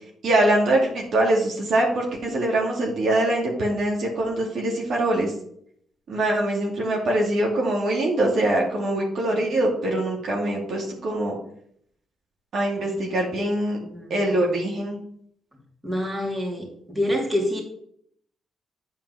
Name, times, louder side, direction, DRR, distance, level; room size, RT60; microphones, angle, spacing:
voice 1, 0.2-5.3 6.1-11.3 12.5-13.8 14.1-15.0, right 1 dB, 65° right, -1 dB, 2.5 m, -23 dB
voice 2, 13.8-14.1 15.8-17.6, left 1 dB, 20° right, -1 dB, 2.8 m, -27 dB
9.3 x 4.6 x 5.6 m, 0.67 s
cardioid pair, 95°, 0 cm